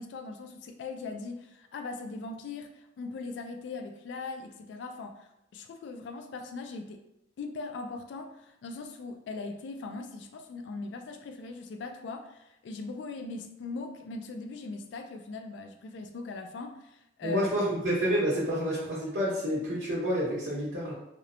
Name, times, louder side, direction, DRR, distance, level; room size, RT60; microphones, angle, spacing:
voice 1, 0.0-7.0 7.4-17.4, left 3 dB, 80° left, 6 dB, 0.3 m, -40 dB
voice 2, 17.2-20.9, equal, 85° right, -9 dB, 0.9 m, -29 dB
2.8 x 2.0 x 2.5 m, 0.86 s
head